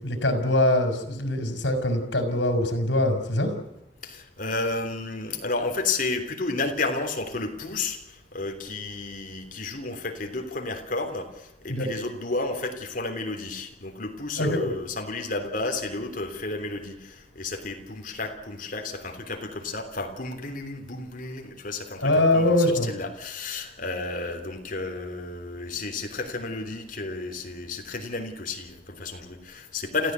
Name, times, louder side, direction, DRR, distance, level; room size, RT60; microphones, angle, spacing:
voice 1, 0.0-3.5 11.7-11.9 14.4-14.7 22.0-22.9, left 1 dB, 80° left, 7 dB, 4.6 m, -23 dB
voice 2, 4.0-30.1, left 3 dB, 45° left, 5 dB, 3.3 m, -32 dB
29.0 x 15.0 x 8.2 m, 0.88 s
head